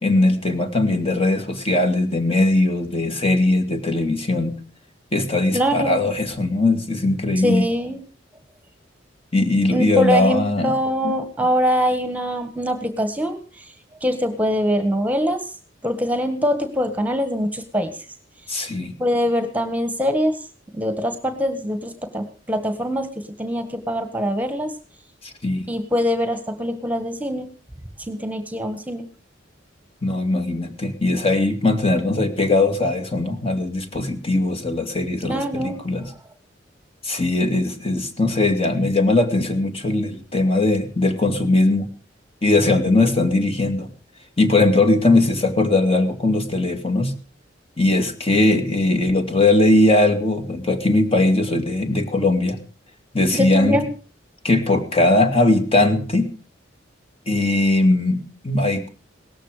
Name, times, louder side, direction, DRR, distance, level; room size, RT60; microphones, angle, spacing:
voice 1, 0.0-4.6 5.1-7.6 9.3-10.7 11.0-11.1 18.5-18.9 25.2-25.7 30.0-36.1 37.0-41.9 42.4-43.9 44.4-47.1 47.8-52.6 53.1-53.8 54.4-56.3 57.3-58.9, left 2 dB, 30° left, 6 dB, 2.4 m, -19 dB
voice 2, 5.5-6.0 7.4-8.0 9.7-13.4 14.0-15.4 15.8-17.9 18.5-18.6 19.0-20.4 20.7-23.1 23.4-24.7 25.7-27.5 28.1-29.1 35.2-35.8 53.3-53.8, equal, 10° right, 8 dB, 1.6 m, -23 dB
18.0 x 14.0 x 5.0 m, 0.38 s
head